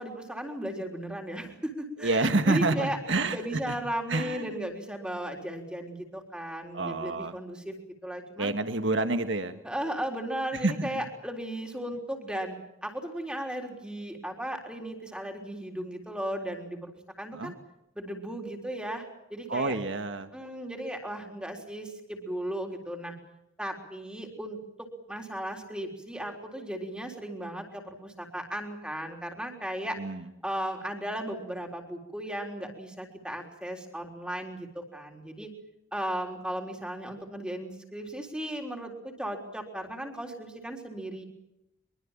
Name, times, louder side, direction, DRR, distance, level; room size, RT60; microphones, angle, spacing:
voice 1, 0.0-3.0 3.3-7.8 8.0-8.5 9.6-17.5 18.0-19.7 20.3-23.2 23.6-30.0 30.4-35.5 35.9-41.2, right 1 dB, 5° right, 2 dB, 3.7 m, -36 dB
voice 2, 2.0-3.4 3.7-3.8 4.1-4.5 6.7-7.3 8.4-9.6 10.6-11.0 17.3-17.5 19.5-20.3 30.0-30.2, right 2 dB, 75° right, 8 dB, 1.6 m, -28 dB
24.0 x 23.5 x 7.4 m, 0.88 s
head